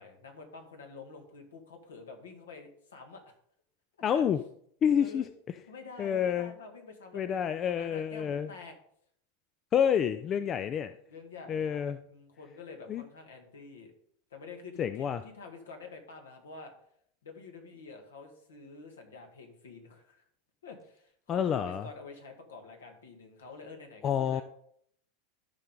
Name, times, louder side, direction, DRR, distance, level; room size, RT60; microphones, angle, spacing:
voice 1, 0.0-3.3 4.1-4.2 4.9-5.3 5.7-8.7 10.3-10.7 11.1-13.9 14.3-16.7 17.2-20.2 20.6-24.4, left 4 dB, 70° left, 4 dB, 1.9 m, -48 dB
voice 2, 4.0-4.4 4.8-5.2 6.0-6.5 7.1-8.5 9.7-10.9 11.5-12.0 12.9-13.0 14.8-15.2 21.3-21.8 24.0-24.4, left 8 dB, 30° left, 12 dB, 0.4 m, -28 dB
13.0 x 5.6 x 3.9 m, 0.67 s
figure-of-eight pair, 85°, 0 cm